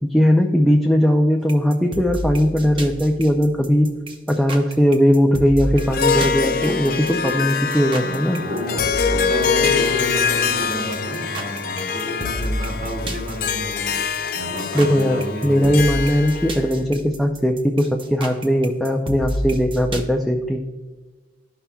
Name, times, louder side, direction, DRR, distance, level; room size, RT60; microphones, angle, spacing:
voice 1, 0.0-3.9 4.3-8.4 14.7-20.6, equal, ahead, 1 dB, 0.4 m, -19 dB
sound 1, 1.5-20.0, equal, 30° right, 0.7 m, -30 dB
Harp, 5.8-16.7, left 6 dB, 55° left, 0.5 m, -24 dB
voice 2, 8.0-14.0 14.3-15.7, equal, 50° right, -2 dB, 2.3 m, -30 dB
12.5 x 5.6 x 2.3 m, 1.3 s
head